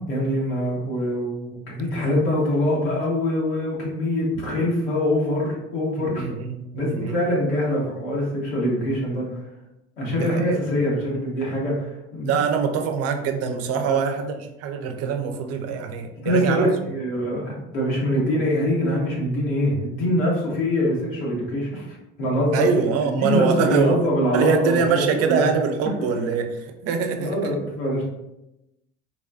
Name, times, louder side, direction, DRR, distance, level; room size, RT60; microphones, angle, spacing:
voice 1, 0.0-6.3 6.7-9.4 10.0-12.4 13.9-14.0 16.2-22.7 23.0-25.5 27.2-28.0, left 1 dB, 90° left, -5 dB, 1.2 m, -24 dB
voice 2, 6.0-7.2 10.0-10.6 12.2-16.7 22.5-24.0 24.3-27.6, right 6 dB, 55° right, 7 dB, 0.6 m, -24 dB
4.0 x 2.3 x 2.5 m, 0.93 s
supercardioid pair, 85°, 30 cm